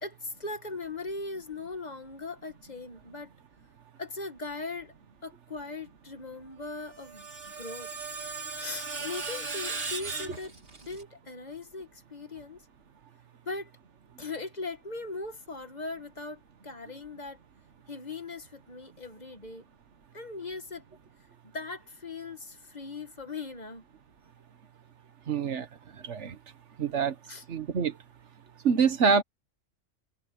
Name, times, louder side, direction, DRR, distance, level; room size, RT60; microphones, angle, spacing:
voice 1, 0.0-3.3 4.0-4.9 5.2-7.9 8.6-10.5 10.8-12.6 13.4-13.7 14.2-17.4 17.9-19.6 20.1-20.8 21.4-23.8 27.3-27.4, left 3 dB, 35° left, 1.7 m, -39 dB
Screech, 6.7-11.0, right 4 dB, 50° right, 2.6 m, -37 dB
voice 2, 25.3-25.7 26.0-26.3 26.8-27.1 27.5-27.9 28.6-29.2, right 6 dB, 65° right, 1.5 m, -25 dB
omnidirectional pair, 1.3 m